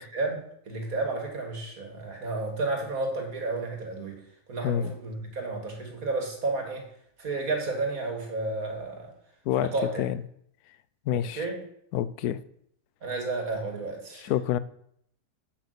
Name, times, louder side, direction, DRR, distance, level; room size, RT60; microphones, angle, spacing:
voice 1, 0.1-4.2 4.5-6.8 7.2-9.1 9.6-10.0 11.1-11.6 13.0-14.3, right 3 dB, 55° right, 3 dB, 2.6 m, -32 dB
voice 2, 11.1-11.4 11.9-12.4 14.2-14.6, left 11 dB, 75° left, 15 dB, 1.1 m, -27 dB
8.4 x 8.0 x 6.6 m, 0.71 s
omnidirectional pair, 1.7 m